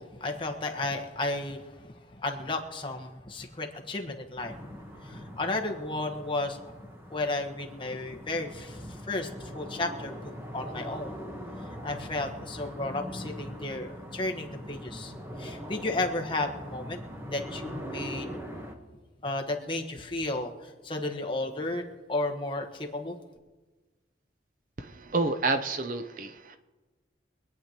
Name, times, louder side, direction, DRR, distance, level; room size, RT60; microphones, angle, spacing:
voice 1, 0.0-6.6 7.1-11.1 11.8-15.1 15.4-17.0 17.3-18.3 19.2-23.2, left 2 dB, 25° left, 2 dB, 1.3 m, -33 dB
sound 1, 4.4-18.7, equal, 15° right, 1.1 m, -42 dB
voice 2, 24.8-26.6, right 3 dB, 45° right, 8 dB, 0.6 m, -29 dB
25.5 x 9.4 x 2.9 m, 1.3 s
head